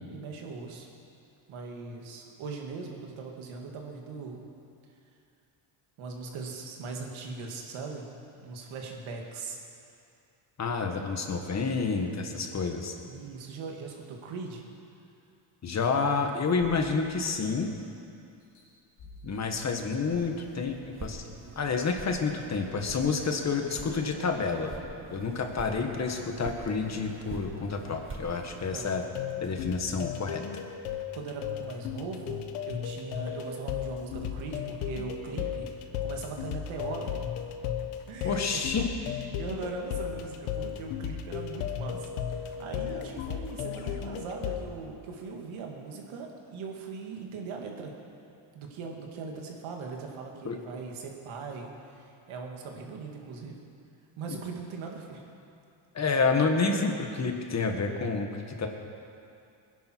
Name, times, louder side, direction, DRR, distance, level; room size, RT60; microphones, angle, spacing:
voice 1, 0.1-0.9 1.5-4.4 6.0-8.1 8.4-9.6 13.1-14.6 28.5-28.9 31.1-35.7 36.0-37.2 38.1-38.7 39.3-47.9 48.5-53.6 54.2-55.2, right 4 dB, 70° right, 1 dB, 2.4 m, -40 dB
voice 2, 10.6-12.9 15.6-17.7 19.2-21.2 21.5-24.7 25.1-29.0 29.4-30.4 38.2-38.8 50.4-50.6 55.9-58.7, left 4 dB, 30° left, 4 dB, 1.6 m, -29 dB
sound 1, 17.3-17.9 18.4-20.5 21.1-21.2, left 1 dB, 55° left, 3.6 m, -52 dB
sound 2, 20.1-28.9, right 3 dB, 25° right, 1.4 m, -44 dB
sound 3, 28.9-44.6, left 9 dB, 85° left, 1.2 m, -35 dB
21.0 x 10.5 x 4.7 m, 2.6 s
cardioid pair, 120°, 49 cm